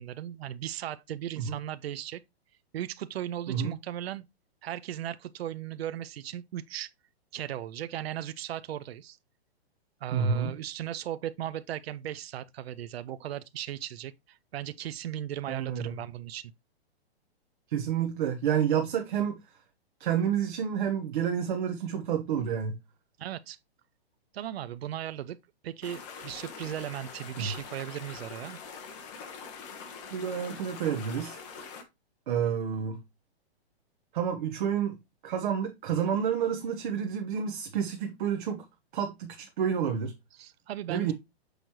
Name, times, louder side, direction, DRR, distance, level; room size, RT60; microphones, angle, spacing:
voice 1, 0.0-2.2 2.7-4.3 4.6-6.9 7.3-9.2 10.0-16.5 23.2-23.6 24.3-25.4 25.6-28.6 40.4-41.1, right 11 dB, 70° right, 0.6 m, -37 dB
voice 2, 10.1-10.5 15.5-15.9 17.7-19.4 20.0-22.8 27.4-27.5 30.1-31.4 32.3-33.0 34.1-35.0 35.2-38.6 38.9-40.1 40.9-41.1, right 8 dB, 50° right, 1.1 m, -29 dB
sound 1, 25.8-31.8, left 5 dB, 30° left, 1.3 m, -44 dB
6.5 x 5.1 x 3.0 m
hypercardioid pair, 160°, 32 cm